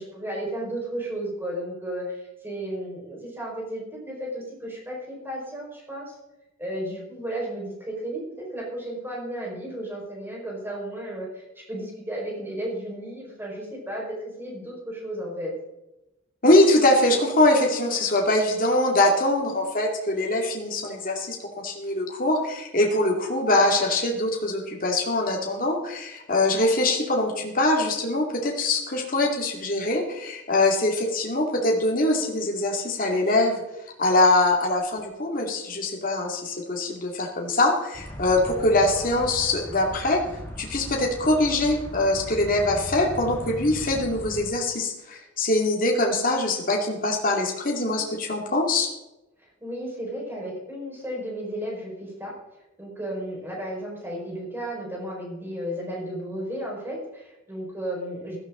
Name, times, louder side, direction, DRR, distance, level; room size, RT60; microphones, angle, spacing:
voice 1, 0.0-6.2 6.6-15.5 49.6-52.3 52.8-58.4, right 1 dB, 10° right, -2 dB, 4.8 m, -34 dB
voice 2, 16.4-21.4 21.6-33.5 34.0-40.2 40.6-48.9, left 2 dB, 40° left, 0 dB, 2.4 m, -23 dB
sound 1, 37.9-44.5, equal, 10° left, 3.3 m, -38 dB
15.5 x 13.5 x 3.8 m, 0.94 s
head